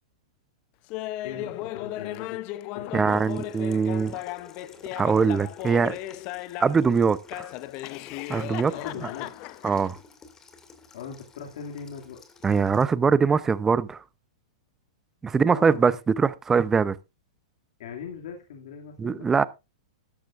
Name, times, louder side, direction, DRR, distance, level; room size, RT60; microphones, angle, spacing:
Laughter, 0.9-6.9 7.3-9.9, left 15 dB, 40° left, 0.6 m, -36 dB
voice 1, 1.2-2.4 2.7-3.5 3.9-4.0 8.7-9.3 10.9-12.2 15.4-15.9 17.8-19.4, left 7 dB, 65° left, 2.3 m, -40 dB
voice 2, 2.9-4.2 5.0-6.0 6.6-7.5 8.3-8.7 9.6-10.0 12.4-14.0 15.2-17.0 19.0-19.4, right 5 dB, 10° right, 0.6 m, -22 dB
Water tap faucet / Sink (filling or washing), 3.1-12.8, left 4 dB, 15° left, 2.3 m, -52 dB
13.5 x 12.0 x 2.5 m
hypercardioid pair, 140°, 3 cm